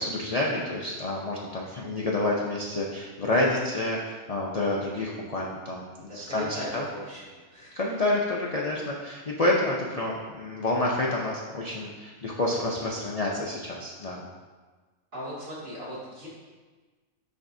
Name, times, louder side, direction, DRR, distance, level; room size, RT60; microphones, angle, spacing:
voice 1, 0.0-5.8 6.1-6.9 7.8-14.3, left 2 dB, 65° left, -4 dB, 0.3 m, -28 dB
voice 2, 6.0-7.8 15.1-16.3, equal, 35° right, -9 dB, 2.0 m, -38 dB
10.5 x 3.5 x 2.6 m, 1.4 s
omnidirectional pair, 1.5 m